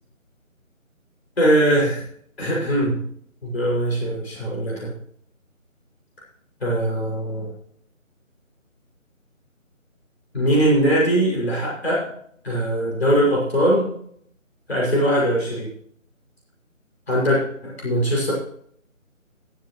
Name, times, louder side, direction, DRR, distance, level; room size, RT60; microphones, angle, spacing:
voice 1, 1.4-2.1 2.4-3.0 3.4-4.9 6.6-7.5 10.3-12.1 12.4-13.9 14.7-15.7 17.1-18.3, right 1 dB, 50° left, -5 dB, 6.3 m, -21 dB
24.0 x 8.0 x 3.2 m, 0.65 s
figure-of-eight pair, 165°, 41 cm